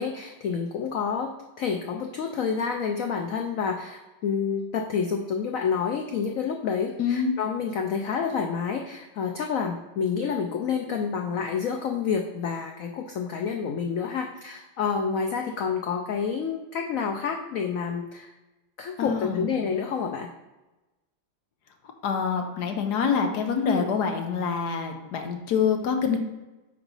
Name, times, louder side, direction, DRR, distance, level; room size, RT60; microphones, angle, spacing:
voice 1, 0.0-1.3 1.6-18.3 18.8-20.3 23.7-23.9, left 6 dB, 90° left, 3 dB, 0.7 m, -28 dB
voice 2, 7.0-7.3 19.0-19.5 22.0-26.2, left 6 dB, 65° left, 5 dB, 1.2 m, -26 dB
8.0 x 3.0 x 5.4 m, 1.1 s
omnidirectional pair, 2.1 m